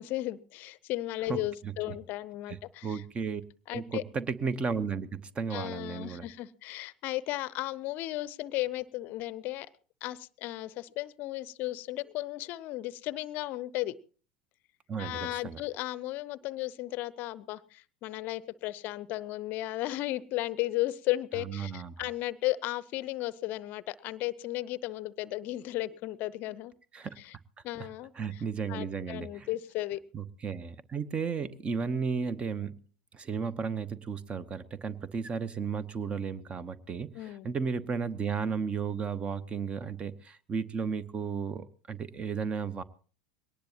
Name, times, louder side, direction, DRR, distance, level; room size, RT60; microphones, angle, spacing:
voice 1, 0.0-3.0 3.7-4.0 5.5-9.7 10.0-13.9 15.0-26.7 27.2-27.3 27.6-28.1 28.7-30.0 31.4-31.5 37.1-37.5, left 17 dB, 45° left, 20 dB, 0.6 m, -35 dB
voice 2, 1.3-2.0 2.5-3.4 3.7-6.2 14.9-15.6 21.4-21.9 26.9-27.2 27.8-27.9 28.1-29.5 30.1-32.8 33.1-42.8, right 6 dB, 25° right, 17 dB, 1.0 m, -34 dB
21.5 x 18.5 x 2.9 m, 0.40 s
figure-of-eight pair, 75°, 4 cm